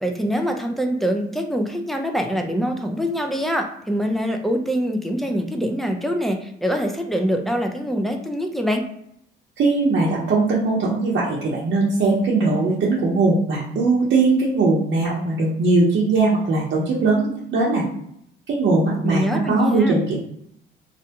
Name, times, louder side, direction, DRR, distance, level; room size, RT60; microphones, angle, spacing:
voice 1, 0.0-8.8 19.0-20.0, equal, ahead, 3 dB, 0.4 m, -24 dB
voice 2, 9.6-17.8 18.5-20.2, right 3 dB, 65° right, -6 dB, 0.7 m, -20 dB
2.6 x 2.1 x 2.8 m, 0.72 s
cardioid pair, 90°, 20 cm